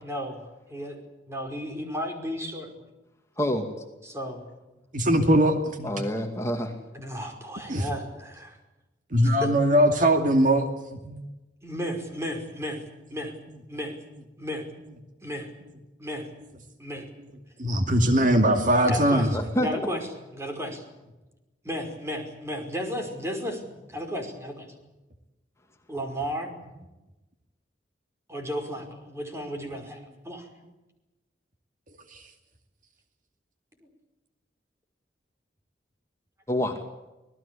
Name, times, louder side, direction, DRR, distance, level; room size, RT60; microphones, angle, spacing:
voice 1, 0.0-1.0 1.3-2.9 4.0-4.4 6.9-8.6 9.2-9.5 11.6-12.8 13.1-13.3 13.7-14.0 14.4-14.6 15.2-15.5 16.0-16.3 16.8-17.1 18.8-20.1 20.3-20.8 21.6-23.6 23.9-24.7 25.9-26.5 28.3-30.5, equal, 15° right, 4 dB, 5.2 m, -34 dB
voice 2, 3.4-3.7 5.8-6.7 19.3-19.9 36.5-36.8, equal, 15° left, 4 dB, 2.3 m, -27 dB
voice 3, 4.9-5.9 7.2-7.3 7.7-7.9 9.1-10.7 11.0-11.2 17.6-19.3 32.1-32.2, right 1 dB, 45° right, 6 dB, 2.4 m, -21 dB
26.0 x 18.5 x 8.4 m, 1.0 s
head